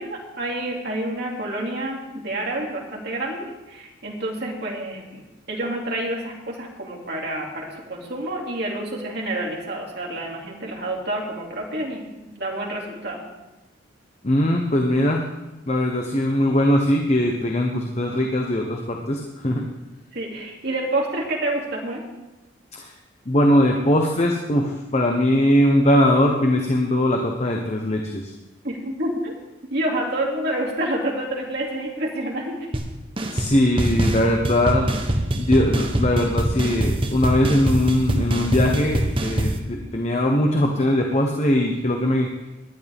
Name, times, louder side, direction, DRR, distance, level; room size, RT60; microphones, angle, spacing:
voice 1, 0.0-5.2 5.5-13.2 20.1-22.0 28.6-29.4 29.7-32.8, right 1 dB, 55° right, -1 dB, 2.7 m, -28 dB
voice 2, 14.2-15.2 15.7-19.7 22.7-22.9 23.3-28.3 33.3-34.9 35.3-42.3, left 1 dB, 35° left, 1 dB, 1.0 m, -20 dB
sound 1, 32.7-32.9 33.2-33.5 33.8-39.6, right 1 dB, 25° right, 1.0 m, -23 dB
19.0 x 11.5 x 3.6 m, 1.1 s
head